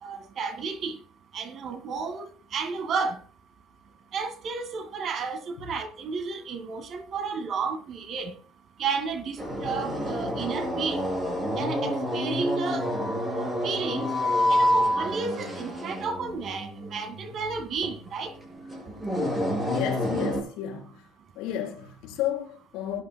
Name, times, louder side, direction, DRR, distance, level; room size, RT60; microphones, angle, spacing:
voice 1, 0.0-1.0 1.3-3.2 4.1-8.3 8.8-11.0 11.6-12.9 13.3-14.1 14.5-18.3, right 5 dB, 45° right, 1.8 m, -32 dB
sound 1, 9.4-20.4, left 1 dB, 15° right, 6.0 m, -28 dB
voice 2, 19.7-21.0 21.4-23.0, left 10 dB, 80° left, 4.1 m, -32 dB
18.0 x 11.0 x 2.2 m
cardioid pair, 140°, 0 cm